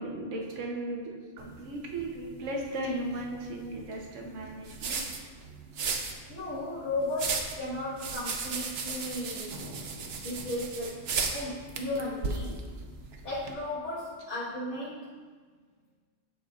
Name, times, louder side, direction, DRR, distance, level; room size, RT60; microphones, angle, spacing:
voice 1, 0.0-5.0 5.4-5.8 9.5-10.5, right 1 dB, 85° right, 0 dB, 1.2 m, -37 dB
sound 1, 1.4-13.5, right 4 dB, 65° right, 0.8 m, -37 dB
voice 2, 6.3-9.7 10.2-11.0 11.3-12.6 13.2-15.1, left 2 dB, 80° left, -11 dB, 1.8 m, -35 dB
11.0 x 4.3 x 2.4 m, 1.6 s
omnidirectional pair, 1.2 m